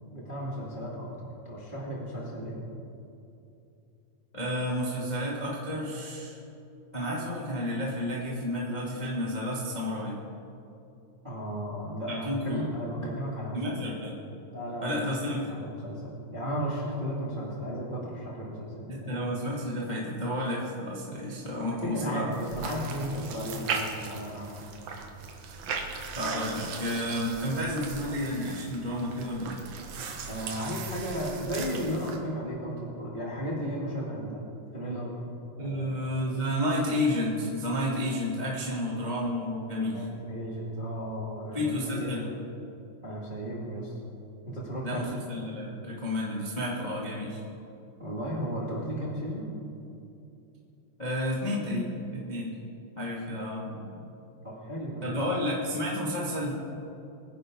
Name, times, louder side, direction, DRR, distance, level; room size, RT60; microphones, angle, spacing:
voice 1, 0.1-2.6 11.2-13.8 14.5-19.1 21.7-24.5 30.3-34.4 34.7-35.2 35.6-36.0 38.7-38.8 39.8-42.2 43.0-43.9 44.5-45.1 48.0-49.5 53.9-54.0 54.4-55.2, equal, 50° right, -5 dB, 0.5 m, -35 dB
voice 2, 4.3-6.4 6.9-10.2 12.1-12.7 13.5-14.1 14.8-15.4 18.9-22.3 26.1-29.6 35.6-40.0 41.5-42.3 44.8-47.4 51.0-52.5 52.9-53.9 55.0-56.5, left 1 dB, 90° left, -5 dB, 0.4 m, -31 dB
sound 1, 22.3-32.2, right 5 dB, 80° right, 1.7 m, -38 dB
24.5 x 10.5 x 3.9 m, 2.7 s
omnidirectional pair, 5.4 m